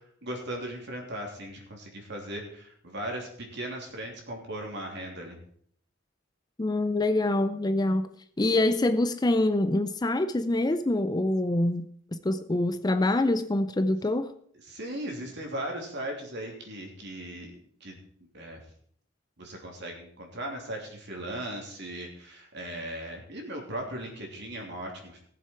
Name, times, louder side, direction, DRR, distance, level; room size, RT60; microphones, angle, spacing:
voice 1, 0.2-5.4 14.6-18.0 18.3-18.6 19.4-25.2, right 1 dB, 55° right, 1 dB, 3.2 m, -38 dB
voice 2, 6.6-8.1 8.4-14.3, left 2 dB, 20° left, 11 dB, 0.5 m, -25 dB
18.5 x 7.5 x 4.6 m, 0.62 s
head